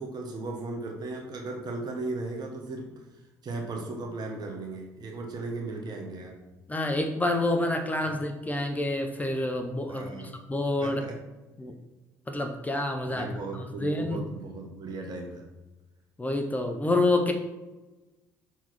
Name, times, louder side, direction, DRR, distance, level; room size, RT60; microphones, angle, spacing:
voice 1, 0.0-2.9 3.4-6.3 9.9-10.3 10.8-11.2 13.1-15.4, right 3 dB, 50° right, 1 dB, 1.5 m, -36 dB
voice 2, 6.7-11.0 11.6-11.7 12.3-13.3 13.8-14.2 16.2-17.3, left 2 dB, 15° left, 5 dB, 1.0 m, -28 dB
6.0 x 4.6 x 4.3 m, 1.1 s
hypercardioid pair, 55°, 9 cm